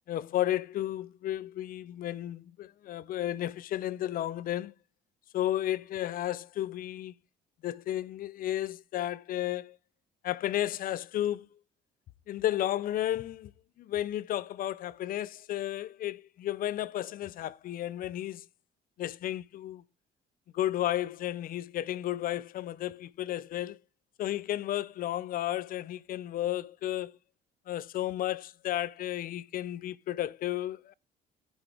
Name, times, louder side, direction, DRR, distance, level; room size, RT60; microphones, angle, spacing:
voice 1, 0.1-4.7 5.3-7.1 7.6-9.8 10.2-11.6 12.3-13.5 13.8-18.5 19.0-19.8 20.5-23.8 24.2-27.1 27.7-30.9, left 13 dB, 55° left, 0.5 m, -33 dB
15.0 x 6.1 x 3.4 m
cardioid pair, 110°, 17 cm